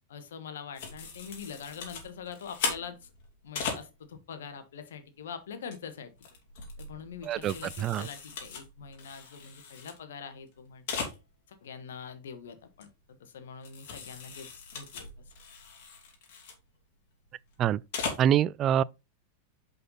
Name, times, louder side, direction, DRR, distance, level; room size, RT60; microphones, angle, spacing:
voice 1, 0.0-3.1 3.4-6.1 6.8-11.0 11.5-12.9 13.2-15.1, left 6 dB, 85° left, 1.3 m, -44 dB
sound 1, 0.7-3.8 5.5-5.7 6.2-10.0 10.2-10.3 10.5-10.6 10.9-11.2 12.8-12.9 13.6-16.5 17.7-18.3, left 5 dB, 65° left, 2.8 m, -38 dB
voice 2, 7.2-8.1 17.6-17.8 18.2-18.8, right 10 dB, 35° right, 0.3 m, -25 dB
5.6 x 5.5 x 3.9 m
hypercardioid pair, 120°, 0 cm